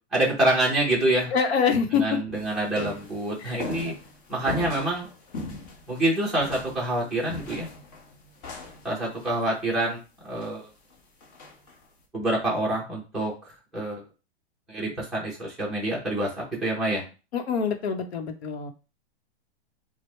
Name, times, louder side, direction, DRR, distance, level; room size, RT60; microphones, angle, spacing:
voice 1, 0.1-1.3 1.9-3.9 4.3-5.1 5.9-7.7 8.8-10.6 12.1-13.3 13.7-14.0 14.7-16.3 16.6-17.0, right 1 dB, ahead, -5 dB, 0.6 m, -26 dB
voice 2, 1.3-2.2 3.4-3.6 17.3-18.7, left 6 dB, 70° left, 6 dB, 0.9 m, -25 dB
sound 1, 2.3-9.4 10.4-10.5 10.9-11.0 11.2-11.8, left 2 dB, 35° left, 0.9 m, -39 dB
4.6 x 2.2 x 3.2 m, 0.32 s
hypercardioid pair, 170°, 33 cm